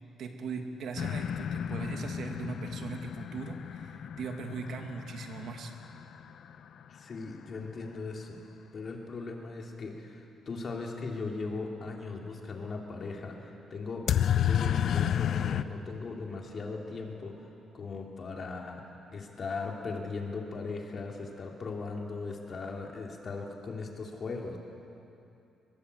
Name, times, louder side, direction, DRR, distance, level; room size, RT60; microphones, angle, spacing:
voice 1, 0.2-5.8, right 4 dB, 55° right, 4 dB, 2.3 m, -39 dB
sound 1, 1.0-6.7 14.1-15.6, left 9 dB, 50° left, 0.7 m, -31 dB
voice 2, 6.9-8.4 8.7-17.4 17.7-18.8 19.1-24.6, left 3 dB, 35° left, 0 dB, 2.7 m, -38 dB
24.0 x 22.0 x 8.2 m, 2.7 s
cardioid pair, 170°, 0 cm